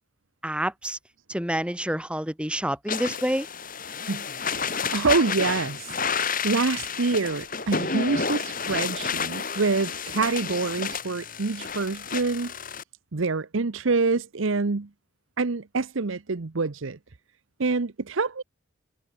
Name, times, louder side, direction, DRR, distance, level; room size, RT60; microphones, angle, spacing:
voice 1, 0.4-1.0 1.3-3.5, right 1 dB, 5° right, 3.7 m, -28 dB
sound 1, 2.9-12.8, left 5 dB, 40° left, 6.1 m, -30 dB
voice 2, 4.1-12.5 13.1-14.9 15.4-17.0 17.6-18.4, right 4 dB, 65° right, 0.8 m, -26 dB
head